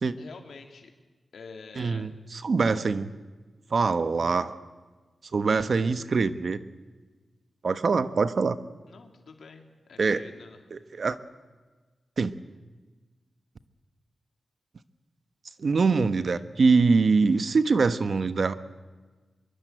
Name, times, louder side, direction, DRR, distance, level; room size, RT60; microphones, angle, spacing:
voice 1, 0.2-0.9 1.3-2.1 8.9-10.6, left 4 dB, 75° left, 4 dB, 3.1 m, -47 dB
voice 2, 1.8-3.1 3.7-4.5 5.3-6.6 7.6-8.6 10.0-10.2 10.7-11.2 12.2-12.3 15.6-18.6, right 4 dB, 55° right, 12 dB, 1.3 m, -24 dB
24.0 x 23.0 x 9.2 m, 1.3 s
wide cardioid pair, 110°, 0 cm